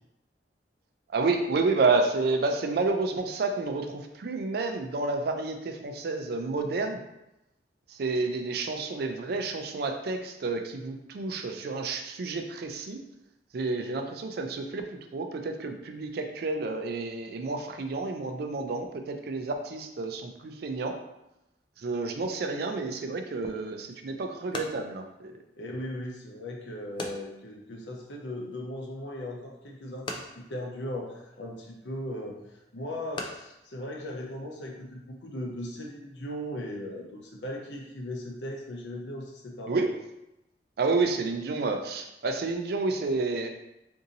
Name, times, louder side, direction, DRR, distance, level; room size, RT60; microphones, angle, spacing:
voice 1, 1.1-7.0 7.9-13.0 13.5-21.0 21.8-25.3 39.7-40.0 40.8-43.5, right 3 dB, 60° right, 5 dB, 0.4 m, -30 dB
sound 1, 23.5-34.8, left 2 dB, 25° left, 0.3 m, -45 dB
voice 2, 25.5-39.9, left 1 dB, 85° left, 0 dB, 0.7 m, -38 dB
2.7 x 2.6 x 3.9 m, 0.89 s
head